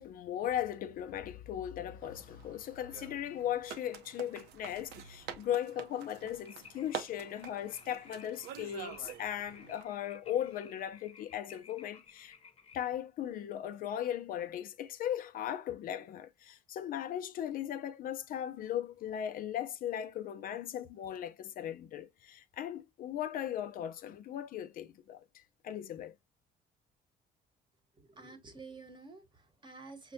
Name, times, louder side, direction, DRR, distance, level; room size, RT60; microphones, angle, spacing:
voice 1, 0.0-12.3 12.7-26.1, left 10 dB, 55° left, 0.4 m, -38 dB
sound 1, 2.0-9.8, right 8 dB, 85° right, 0.6 m, -47 dB
sound 2, 6.4-12.8, left 6 dB, 35° left, 0.8 m, -57 dB
voice 2, 27.9-30.1, right 4 dB, 25° right, 1.0 m, -50 dB
5.7 x 2.1 x 2.6 m
cardioid pair, 110°, 17 cm